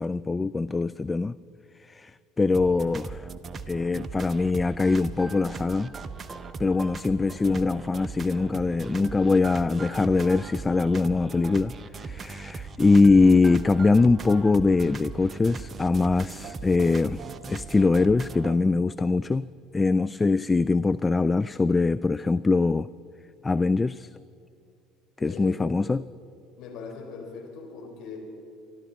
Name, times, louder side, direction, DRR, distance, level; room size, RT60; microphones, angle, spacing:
voice 1, 0.0-1.3 1.8-3.3 3.7-5.9 6.6-11.7 12.0-17.2 17.5-22.9 23.4-24.1 25.2-26.0, left 3 dB, 20° left, 16 dB, 0.3 m, -22 dB
sound 1, 2.5-18.6, right 4 dB, 30° right, 0.9 m, -39 dB
voice 2, 25.2-25.7 26.6-28.2, left 5 dB, 60° left, 0 dB, 4.8 m, -40 dB
26.5 x 12.5 x 4.3 m, 2.5 s
hypercardioid pair, 65°, 0 cm